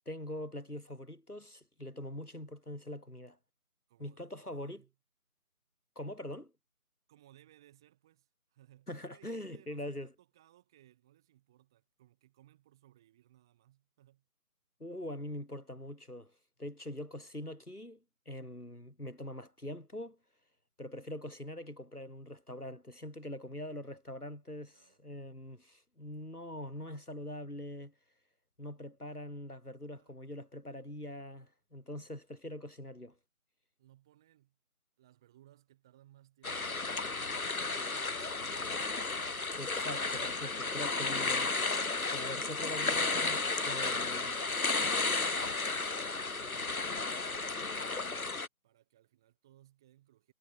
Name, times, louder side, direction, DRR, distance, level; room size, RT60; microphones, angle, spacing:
voice 1, 0.1-3.4 4.0-4.8 6.0-6.5 8.9-10.1 14.8-16.3 16.6-20.2 20.8-27.9 28.6-33.1 39.6-41.5 42.1-44.4, left 1 dB, 90° left, 5.9 m, -43 dB
voice 2, 3.9-4.9 7.1-14.3 24.7-25.0 30.0-30.2 33.8-34.6 35.0-38.8 42.1-42.6 43.7-48.1 48.6-50.3, right 13 dB, 5° right, 1.9 m, -64 dB
sound 1, 36.4-48.5, left 3 dB, 70° left, 1.4 m, -33 dB
figure-of-eight pair, 165°, 44 cm